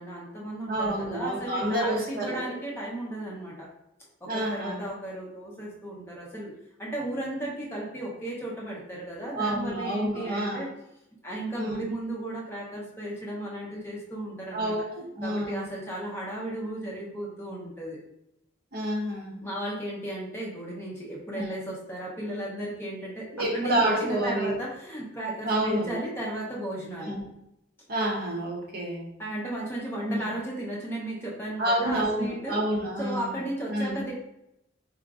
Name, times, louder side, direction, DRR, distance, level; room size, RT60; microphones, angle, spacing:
voice 1, 0.0-3.7 4.2-6.5 6.8-10.7 11.2-14.7 15.2-18.0 19.4-23.3 23.5-27.2 29.2-32.6 33.0-34.1, right 1 dB, 10° left, -5 dB, 0.6 m, -35 dB
voice 2, 0.7-2.6 4.3-4.9 9.3-10.7 11.5-11.9 14.5-15.7 18.7-19.5 21.3-21.5 23.3-24.5 25.4-25.9 27.0-27.2 27.9-29.1 30.0-30.2 31.6-33.4 33.7-34.0, right 1 dB, 45° right, -1 dB, 0.7 m, -29 dB
4.8 x 2.5 x 2.3 m, 0.82 s
head